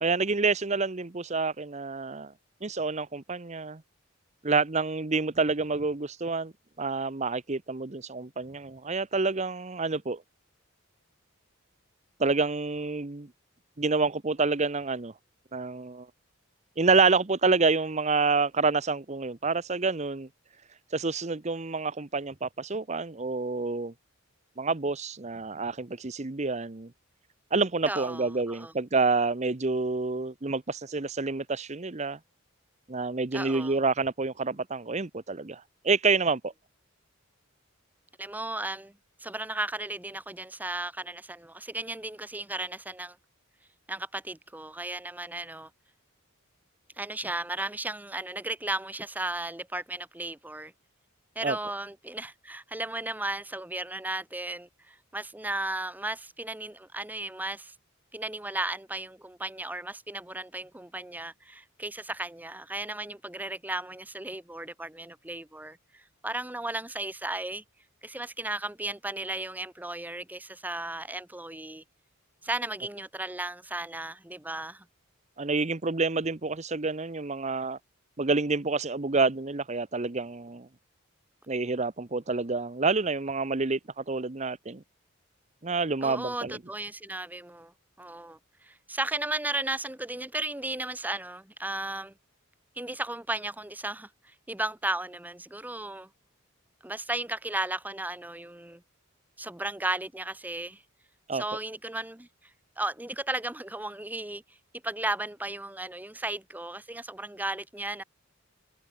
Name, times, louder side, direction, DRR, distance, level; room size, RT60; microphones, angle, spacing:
voice 1, 0.0-2.3 2.6-3.8 4.4-6.5 6.8-10.2 12.2-13.3 13.8-15.1 15.5-16.1 16.8-20.3 20.9-23.9 24.6-26.9 27.5-32.2 32.9-36.5 51.4-51.6 75.4-77.8 78.2-80.7 81.5-84.8 85.6-86.5 101.3-101.4, right 4 dB, 35° right, 0.9 m, -28 dB
voice 2, 27.9-28.7 33.3-33.8 38.2-38.9 39.2-43.2 43.9-45.7 47.0-50.7 51.3-57.7 58.1-67.6 68.0-71.8 72.4-74.8 86.0-87.7 88.0-92.1 92.8-96.1 96.8-98.8 99.4-100.8 101.3-102.3 102.8-104.4 104.8-108.0, right 2 dB, 10° right, 1.0 m, -35 dB
head